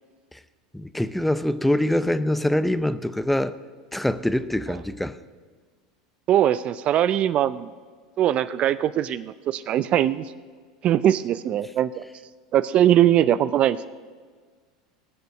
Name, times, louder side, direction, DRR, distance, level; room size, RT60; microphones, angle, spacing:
voice 1, 0.7-3.6 3.9-5.2, left 1 dB, 5° left, 13 dB, 0.6 m, -24 dB
voice 2, 6.3-7.7 8.2-10.3 10.8-11.9 12.5-13.8, right 11 dB, 45° right, 15 dB, 0.4 m, -21 dB
19.0 x 6.8 x 6.4 m, 1.5 s
hypercardioid pair, 90°, 3 cm